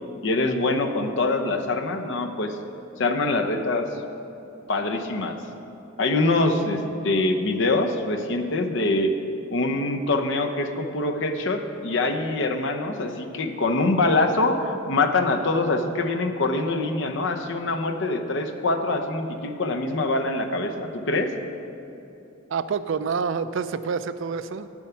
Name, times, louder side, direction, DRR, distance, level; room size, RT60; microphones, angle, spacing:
voice 1, 0.2-2.6 3.0-3.9 4.7-5.4 6.0-9.1 9.5-21.3, left 2 dB, 65° left, 5 dB, 0.8 m, -24 dB
voice 2, 22.5-24.7, right 5 dB, 70° right, 13 dB, 0.4 m, -27 dB
9.3 x 7.2 x 5.8 m, 3.0 s
head